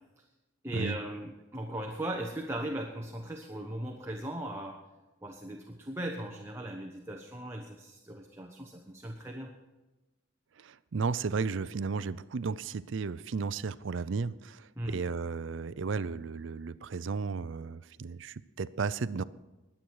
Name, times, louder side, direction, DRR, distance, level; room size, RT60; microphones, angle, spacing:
voice 1, 0.6-4.8 5.2-9.5 14.8-15.0, right 1 dB, 15° right, 1 dB, 1.1 m, -38 dB
voice 2, 10.6-19.2, right 5 dB, 65° right, 17 dB, 0.5 m, -34 dB
21.5 x 8.8 x 4.7 m, 1.1 s
head